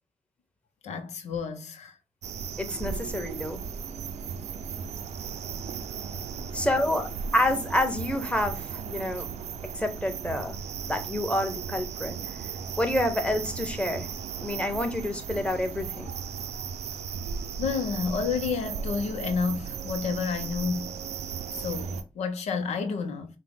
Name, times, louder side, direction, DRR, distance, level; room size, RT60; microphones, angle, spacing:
voice 1, 0.8-1.9 17.6-21.0 21.5-23.3, left 5 dB, 85° left, 0.6 m, -30 dB
sound 1, 2.2-22.0, right 6 dB, 85° right, 0.5 m, -36 dB
voice 2, 2.6-3.6 6.5-9.3 9.7-10.6 10.9-12.2 12.8-14.1 14.4-16.1, left 1 dB, 10° left, 1.2 m, -28 dB
5.7 x 2.1 x 3.5 m
cardioid pair, 50°, 11 cm